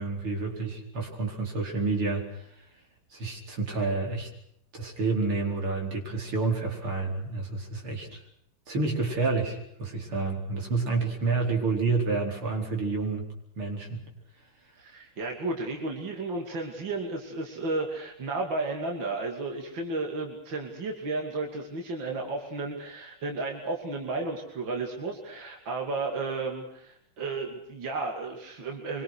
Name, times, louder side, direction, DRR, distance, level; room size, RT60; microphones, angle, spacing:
voice 1, 0.0-2.5 3.1-4.3 4.7-8.2 8.7-13.2 13.6-14.0, right 3 dB, 85° right, 1 dB, 5.5 m, -29 dB
voice 2, 14.7-29.0, right 3 dB, 60° right, 1 dB, 3.4 m, -33 dB
25.0 x 24.0 x 6.4 m, 0.75 s
omnidirectional pair, 2.3 m